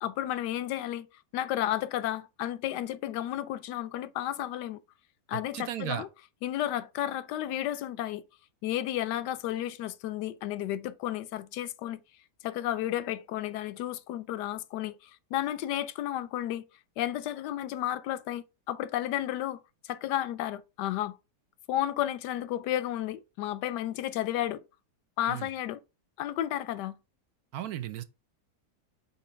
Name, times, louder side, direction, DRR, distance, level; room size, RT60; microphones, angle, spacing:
voice 1, 0.0-1.1 1.3-4.8 5.3-6.1 6.4-8.2 8.6-12.0 12.4-16.6 17.0-21.2 21.7-24.6 25.2-25.8 26.2-27.0, left 12 dB, 90° left, 1.2 m, -32 dB
voice 2, 5.3-6.0 25.3-25.5 27.5-28.0, right 11 dB, 70° right, 1.1 m, -35 dB
5.3 x 4.3 x 5.1 m
omnidirectional pair, 1.8 m